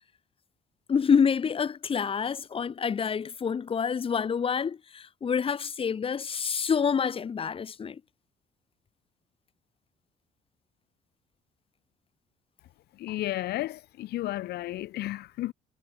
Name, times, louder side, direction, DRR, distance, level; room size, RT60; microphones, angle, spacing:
voice 1, 0.9-8.0, left 6 dB, 35° left, 1.6 m, -27 dB
voice 2, 13.0-15.5, left 15 dB, 70° left, 1.3 m, -33 dB
cardioid pair, 110°, 17 cm